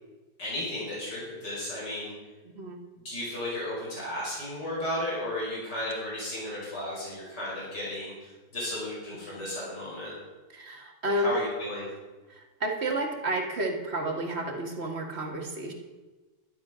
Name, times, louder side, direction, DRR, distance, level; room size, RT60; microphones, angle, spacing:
voice 1, 0.4-2.1 3.0-10.1 11.2-11.9, left 1 dB, 70° left, -6 dB, 6.0 m, -34 dB
voice 2, 10.5-11.4 12.3-15.7, right 1 dB, 40° right, 2 dB, 1.9 m, -31 dB
12.0 x 10.5 x 6.2 m, 1.2 s
omnidirectional pair, 1.9 m